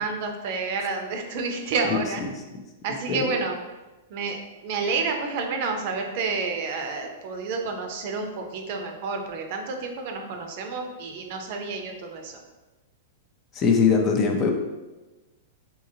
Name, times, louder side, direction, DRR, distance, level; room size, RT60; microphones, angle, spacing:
voice 1, 0.0-2.2 2.8-3.6 4.1-12.4, right 4 dB, 55° right, 4 dB, 0.5 m, -29 dB
voice 2, 13.6-14.5, left 5 dB, 30° left, 3 dB, 0.5 m, -21 dB
3.7 x 2.8 x 2.7 m, 1.1 s
hypercardioid pair, 135°, 0 cm